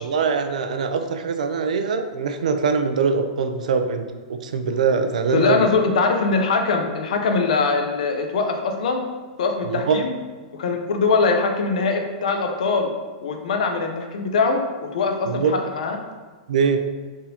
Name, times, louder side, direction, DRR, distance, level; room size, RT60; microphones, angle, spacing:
voice 1, 0.0-4.0 4.3-5.7 9.7-10.0 15.3-15.5 16.5-16.8, right 5 dB, 85° right, 7 dB, 0.4 m, -22 dB
voice 2, 5.3-9.0 9.4-10.2 10.5-12.9 13.2-16.0, left 4 dB, 75° left, 4 dB, 0.6 m, -22 dB
3.6 x 2.8 x 4.1 m, 1.4 s
hypercardioid pair, 135°, 4 cm